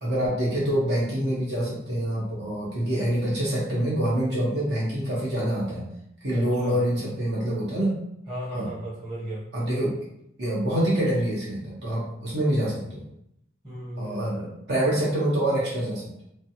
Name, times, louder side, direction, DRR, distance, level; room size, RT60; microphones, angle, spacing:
voice 1, 0.0-5.8 6.2-7.9 8.5-8.7 9.5-10.0 10.4-13.0 14.0-16.2, right 1 dB, 70° right, -6 dB, 1.1 m, -26 dB
voice 2, 6.3-6.8 8.3-9.5 13.6-14.3, right 1 dB, 25° right, -8 dB, 1.0 m, -35 dB
3.2 x 2.2 x 2.8 m, 0.76 s
head